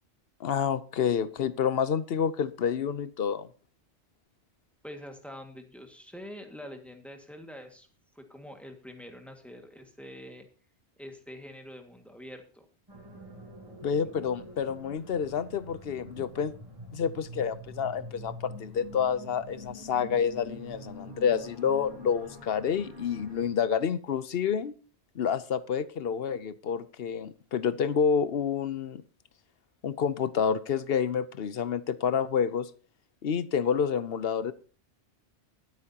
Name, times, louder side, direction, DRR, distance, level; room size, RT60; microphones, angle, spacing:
voice 1, 0.4-3.5 13.8-16.5 16.9-24.7 25.2-29.0 29.8-32.7 33.2-34.5, left 7 dB, 60° left, 16 dB, 0.9 m, -28 dB
voice 2, 4.8-7.9 8.1-10.5 11.0-12.6 14.2-14.3, equal, ahead, 4 dB, 1.8 m, -45 dB
sound 1, 12.9-23.5, equal, 20° right, 3.6 m, -46 dB
22.5 x 8.4 x 2.8 m, 0.38 s
omnidirectional pair, 1.2 m